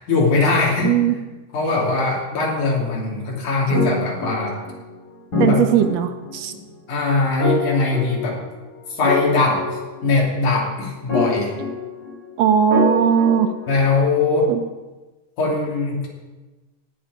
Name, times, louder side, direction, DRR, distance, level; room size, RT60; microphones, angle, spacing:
voice 1, 0.1-0.9 1.5-4.6 5.4-5.6 6.5-6.6 6.9-8.4 8.9-11.5 13.7-14.5 15.4-16.1, left 3 dB, 75° left, -3 dB, 4.4 m, -21 dB
voice 2, 0.8-1.2 5.4-6.5 12.4-13.5 14.5-14.6, right 8 dB, 75° right, 9 dB, 1.7 m, -18 dB
sound 1, 3.7-4.9 5.3-6.5 7.4-8.6 9.0-10.4 11.1-12.3 12.7-14.1, left 3 dB, 40° left, 5.5 m, -25 dB
18.5 x 8.9 x 5.0 m, 1.2 s
omnidirectional pair, 3.5 m